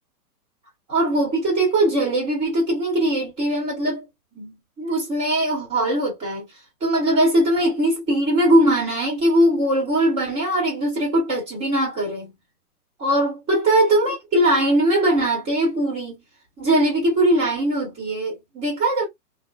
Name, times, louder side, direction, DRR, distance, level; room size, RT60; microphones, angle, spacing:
voice 1, 0.9-4.0 4.3-6.4 6.8-12.3 13.0-16.2 16.6-19.1, right 1 dB, 15° right, 1.1 m, -21 dB
2.5 x 2.1 x 2.3 m
hypercardioid pair, 150°, 47 cm